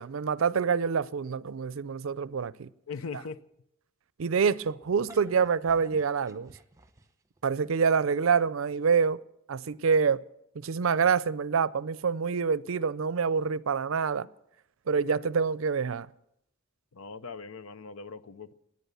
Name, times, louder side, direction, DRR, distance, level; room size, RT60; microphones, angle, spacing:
voice 1, 0.0-2.7 4.2-6.5 7.4-9.2 9.5-10.2 10.6-14.3 14.9-16.1, right 6 dB, 70° right, 0.5 m, -26 dB
voice 2, 2.9-3.4 16.9-18.5, left 4 dB, 85° left, 0.7 m, -40 dB
sound 1, 4.8-7.4, right 1 dB, 15° right, 1.0 m, -52 dB
17.0 x 10.5 x 6.9 m
head